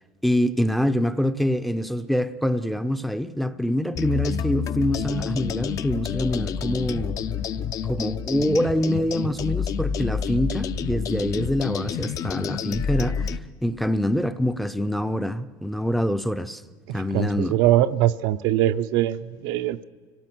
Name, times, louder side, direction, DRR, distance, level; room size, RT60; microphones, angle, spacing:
voice 1, 0.2-7.2 7.9-16.6 16.9-17.6, equal, ahead, 0.5 m, -25 dB
sound 1, 3.9-13.4, left 7 dB, 45° left, 0.6 m, -28 dB
voice 2, 16.9-19.9, right 13 dB, 70° right, 0.6 m, -22 dB
24.5 x 17.5 x 6.1 m
cardioid pair, 135°, 8 cm